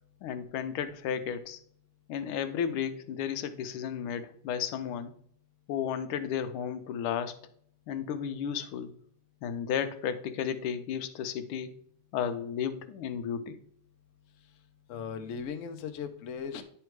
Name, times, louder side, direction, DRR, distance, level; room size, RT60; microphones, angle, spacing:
voice 1, 0.2-1.6 2.1-5.1 5.7-7.4 7.9-8.9 9.4-11.7 12.1-13.6, left 8 dB, 85° left, 10 dB, 1.5 m, -33 dB
voice 2, 14.9-16.6, left 6 dB, 65° left, 7 dB, 0.7 m, -37 dB
10.0 x 3.4 x 4.6 m, 0.62 s
omnidirectional pair, 2.3 m